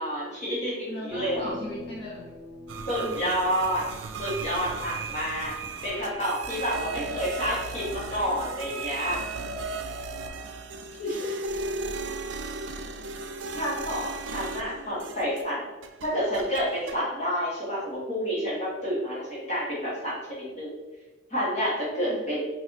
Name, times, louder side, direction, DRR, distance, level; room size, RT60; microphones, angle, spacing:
voice 1, 0.0-1.5 2.9-3.8 4.2-5.5 5.8-9.2 11.0-11.4 13.5-15.7 16.0-20.7 21.3-22.5, equal, 35° left, -7 dB, 1.5 m, -29 dB
voice 2, 0.9-2.3 2.9-3.3 5.7-5.8 11.6-12.2 22.0-22.3, left 1 dB, 75° left, -7 dB, 0.8 m, -40 dB
sound 1, 1.1-4.1, left 2 dB, 20° left, 0.8 m, -42 dB
sound 2, 2.7-15.6 15.8-17.0, right 3 dB, 80° right, 0.4 m, -36 dB
4.8 x 2.7 x 2.9 m, 1.2 s
head